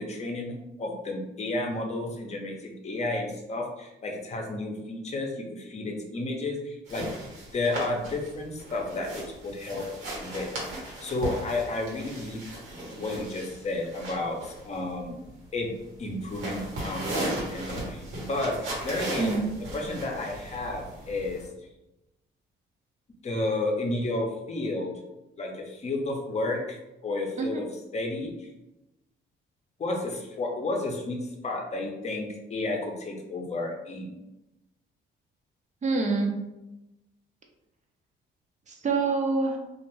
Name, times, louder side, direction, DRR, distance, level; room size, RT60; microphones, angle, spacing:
voice 1, 0.0-7.1 7.5-9.9 10.2-12.4 12.9-15.2 15.5-15.7 16.0-19.4 19.7-21.5 23.2-24.9 25.4-27.7 27.9-28.5 29.8-34.1, left 2 dB, 35° left, 1 dB, 0.7 m, -32 dB
sound 1, 6.9-21.4, right 1 dB, 80° right, 1.1 m, -37 dB
voice 2, 19.2-19.5 27.4-27.7 35.8-36.3 38.7-39.6, right 4 dB, 35° right, 2 dB, 0.6 m, -26 dB
2.5 x 2.4 x 3.0 m, 0.95 s
cardioid pair, 90°, 20 cm